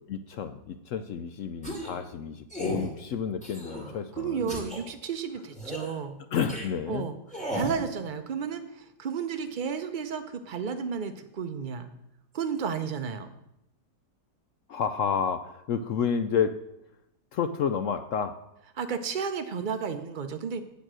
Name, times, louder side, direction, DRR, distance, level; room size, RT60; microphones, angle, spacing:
voice 1, 0.1-4.6 5.8-6.0 6.3-7.0 14.7-16.6 17.3-18.4, left 7 dB, 70° left, 10 dB, 0.7 m, -30 dB
sound 1, 1.6-2.0 2.5-2.9 3.4-3.9 4.5-4.8 5.5-5.9 6.5-6.7 7.3-7.8, right 1 dB, 5° left, 2.3 m, -34 dB
voice 2, 4.1-6.2 6.9-7.2 7.5-11.9 12.3-13.3 18.8-20.6, right 6 dB, 85° right, 7 dB, 0.4 m, -32 dB
8.9 x 8.0 x 6.2 m, 0.85 s
omnidirectional pair, 1.8 m